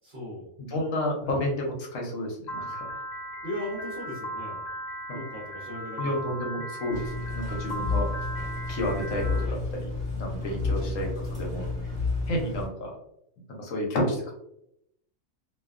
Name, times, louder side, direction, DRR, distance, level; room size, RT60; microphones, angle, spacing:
voice 1, 0.0-0.5 1.2-1.4 3.4-4.6 5.1-6.3 10.6-11.0, left 1 dB, 55° right, -6 dB, 0.9 m, -38 dB
voice 2, 0.6-2.9 5.1-5.2 6.0-8.1 8.7-9.9 10.2-11.9 12.3-13.0 13.5-14.3, left 1 dB, 75° left, 0 dB, 1.0 m, -31 dB
Piano, 2.5-9.4, equal, 45° left, 0.7 m, -37 dB
sound 1, 6.9-12.7, left 3 dB, 10° right, 1.0 m, -31 dB
2.6 x 2.2 x 2.3 m, 0.79 s
omnidirectional pair, 1.4 m